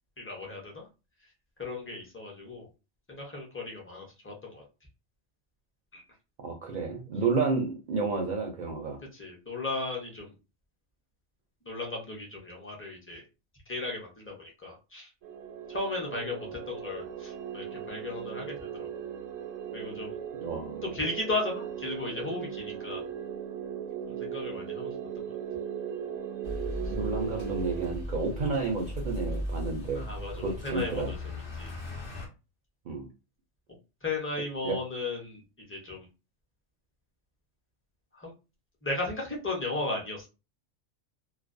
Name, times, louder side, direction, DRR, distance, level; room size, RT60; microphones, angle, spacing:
voice 1, 0.2-0.8 1.6-2.7 3.1-4.6 5.9-6.0 9.1-10.3 11.7-13.2 13.7-15.1 15.7-18.9 19.7-20.2 20.9-23.0 24.1-25.3 29.9-31.2 31.6-31.7 34.0-36.1 38.1-38.3 38.8-40.3, left 2 dB, 15° left, -1 dB, 0.4 m, -35 dB
voice 2, 6.4-9.0 20.4-20.9 26.9-30.1 30.4-31.1 32.9-33.1 34.6-34.8, right 4 dB, 60° right, 2 dB, 0.5 m, -31 dB
sound 1, 15.2-27.9, right 8 dB, 85° right, 1.0 m, -38 dB
sound 2, 26.4-32.3, left 1 dB, 55° left, 0.8 m, -37 dB
2.3 x 2.1 x 2.5 m, 0.30 s
omnidirectional pair, 1.3 m